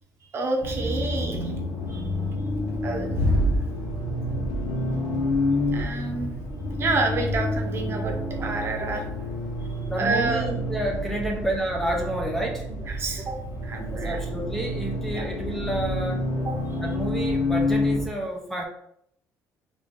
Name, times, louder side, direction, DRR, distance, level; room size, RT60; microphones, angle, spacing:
voice 1, 0.3-1.5 1.9-2.0 2.8-3.1 5.7-6.3 6.8-9.3 10.0-10.5 12.7-13.4 13.6-14.2 15.1-15.2 16.5-16.6, right 3 dB, 40° right, 2 dB, 0.7 m, -29 dB
Accelerating revving vroom, 0.6-18.1, left 1 dB, 80° left, 0.9 m, -28 dB
voice 2, 9.9-12.7 13.9-16.3 16.8-18.6, right 1 dB, 5° left, 0 dB, 0.5 m, -30 dB
3.5 x 2.5 x 3.5 m, 0.73 s
cardioid pair, 130°, 6 cm